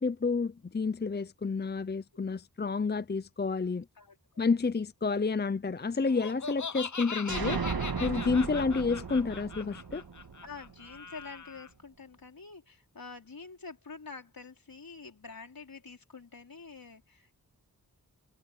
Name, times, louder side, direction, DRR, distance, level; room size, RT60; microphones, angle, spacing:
voice 1, 0.0-3.9 4.4-7.6 8.0-10.0, left 4 dB, 30° left, 0.6 m, -30 dB
voice 2, 4.0-4.5 10.4-17.3, left 4 dB, 70° left, 4.9 m, -47 dB
Laughter, 6.1-11.7, left 5 dB, 50° left, 1.1 m, -40 dB
sound 1, 7.3-11.0, right 5 dB, 75° right, 2.1 m, -35 dB
cardioid pair, 45°, 36 cm